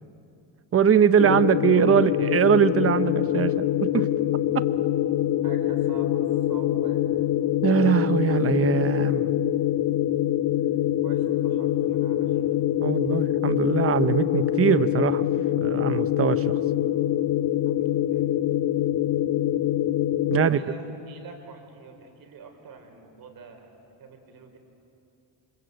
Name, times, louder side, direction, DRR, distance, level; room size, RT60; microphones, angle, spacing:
voice 1, 0.7-4.1 4.5-4.7 7.6-9.3 12.8-15.2 15.6-16.5 20.3-20.6, right 8 dB, 30° right, 14 dB, 0.8 m, -22 dB
sound 1, 1.2-20.5, left 12 dB, 55° left, 1.0 m, -24 dB
voice 2, 1.8-2.1 5.4-6.2 6.5-7.0 11.0-12.5 17.7-18.3 20.3-24.6, right 4 dB, 50° right, 4 dB, 4.2 m, -46 dB
27.5 x 25.0 x 8.1 m, 2.7 s
cardioid pair, 150°, 45 cm